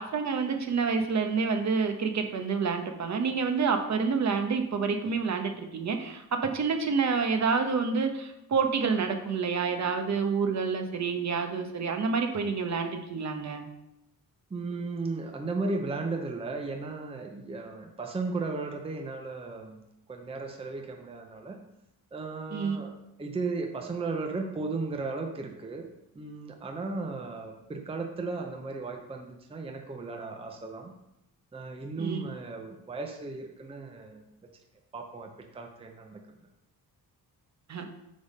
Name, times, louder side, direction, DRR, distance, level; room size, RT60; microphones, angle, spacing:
voice 1, 0.0-6.2 6.5-13.6 22.5-22.8 32.0-32.4 37.7-37.9, right 5 dB, 50° right, 5 dB, 0.9 m, -28 dB
voice 2, 14.5-19.8 20.1-21.6 22.1-30.9 31.5-34.3 34.9-36.2, right 3 dB, 15° right, 3 dB, 0.6 m, -35 dB
8.6 x 3.6 x 5.4 m, 0.85 s
wide cardioid pair, 150°, 37 cm